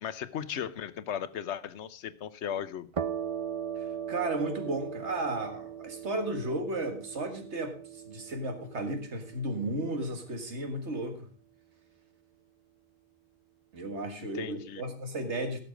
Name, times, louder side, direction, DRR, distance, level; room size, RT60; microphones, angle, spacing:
voice 1, 0.0-2.9 14.2-14.8, left 9 dB, 85° left, 16 dB, 1.0 m, -36 dB
sound 1, 2.9-10.4, right 8 dB, 40° right, 0.5 m, -39 dB
voice 2, 3.8-11.3 13.7-15.6, right 2 dB, 85° right, 6 dB, 2.0 m, -34 dB
16.0 x 6.6 x 5.1 m, 0.42 s
omnidirectional pair, 1.1 m